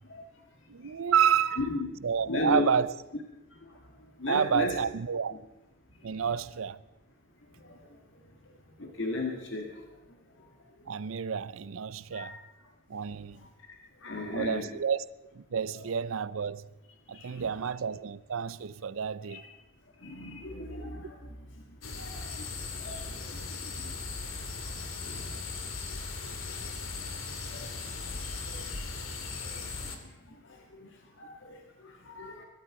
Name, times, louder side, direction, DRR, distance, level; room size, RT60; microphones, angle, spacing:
voice 1, 0.7-1.7 2.0-2.9 4.3-5.4 6.0-6.8 10.9-12.4 12.9-13.4 14.3-15.0 15.3-16.7 17.1-19.4, right 7 dB, 80° right, 0.5 m, -29 dB
voice 2, 1.6-1.9 2.3-2.7 4.2-4.7 8.8-9.7 12.1-12.4 14.0-14.7 17.2-17.4 19.3-19.4 20.0-21.2 22.0-22.2 22.9-23.0 27.5-27.7 31.2-31.3 32.1-32.4, left 2 dB, 60° left, 1.8 m, -34 dB
sound 1, 21.8-30.0, left 4 dB, 80° left, 2.1 m, -38 dB
22.5 x 12.0 x 4.8 m
head